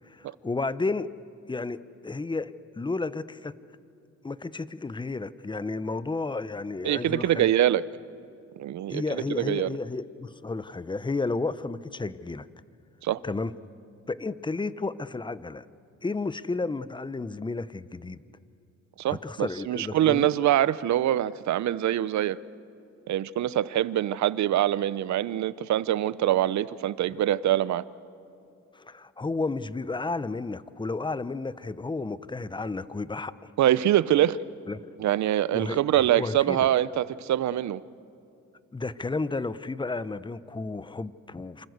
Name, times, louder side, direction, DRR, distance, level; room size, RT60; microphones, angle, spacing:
voice 1, 0.0-1.1 1.5-3.6 4.2-7.5 8.9-12.5 13.2-13.5 14.1-15.6 16.0-18.2 19.1-20.3 28.7-33.4 34.7-34.9 35.5-35.8 36.1-36.6 38.7-41.7, left 3 dB, 15° left, 15 dB, 0.8 m, -32 dB
voice 2, 6.8-7.8 8.6-9.8 13.0-13.2 19.0-22.4 23.1-27.8 33.6-34.4 35.0-37.8, right 12 dB, 70° right, 18 dB, 0.8 m, -24 dB
27.5 x 25.5 x 8.0 m, 2.6 s
cardioid pair, 90°, 30 cm